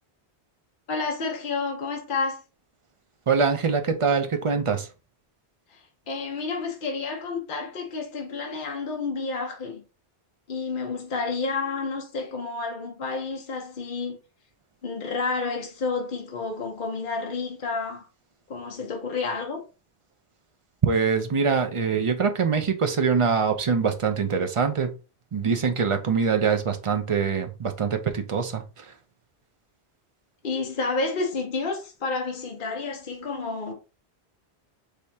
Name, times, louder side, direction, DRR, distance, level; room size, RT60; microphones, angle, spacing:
voice 1, 0.9-2.4 5.7-9.8 10.5-14.2 14.8-18.0 18.5-19.6 30.4-33.7, left 4 dB, 50° left, 1.1 m, -30 dB
voice 2, 3.3-4.9 20.8-24.9 25.3-28.9, right 5 dB, 40° right, 0.5 m, -24 dB
5.0 x 3.4 x 2.8 m
omnidirectional pair, 1.1 m